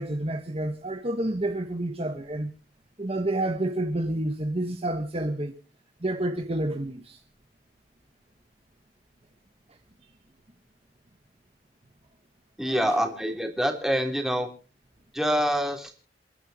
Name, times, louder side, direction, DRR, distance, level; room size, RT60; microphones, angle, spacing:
voice 1, 0.0-2.5 3.0-5.6 6.0-7.2 12.7-13.0, right 1 dB, 35° right, 1.2 m, -29 dB
voice 2, 12.6-14.5 15.1-15.9, equal, ahead, 3.3 m, -26 dB
28.5 x 11.5 x 2.9 m
head